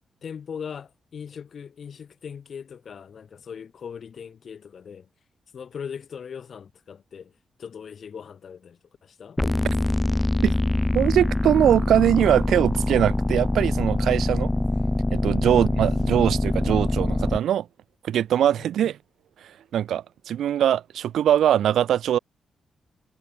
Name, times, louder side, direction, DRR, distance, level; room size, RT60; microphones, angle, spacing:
voice 1, 0.2-5.1 5.5-7.3 7.6-9.4 18.6-18.7, left 7 dB, 50° left, 2.6 m, -39 dB
sound 1, 9.4-17.4, left 1 dB, 10° left, 0.6 m, -24 dB
voice 2, 10.9-14.5 15.1-17.7 18.0-19.0 19.7-22.2, right 10 dB, 85° right, 0.8 m, -22 dB
wide cardioid pair, 155°, 0 cm